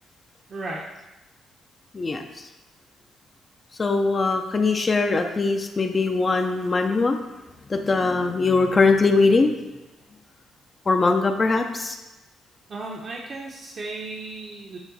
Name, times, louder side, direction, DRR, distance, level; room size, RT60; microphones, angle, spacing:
voice 1, 0.5-0.8 12.7-14.8, right 2 dB, 45° right, -2 dB, 0.9 m, -35 dB
voice 2, 1.9-2.5 3.8-7.2 7.7-9.6 10.9-12.0, left 3 dB, 30° left, 4 dB, 0.6 m, -21 dB
8.0 x 3.6 x 4.1 m, 1.0 s
cardioid pair, 90°, 0 cm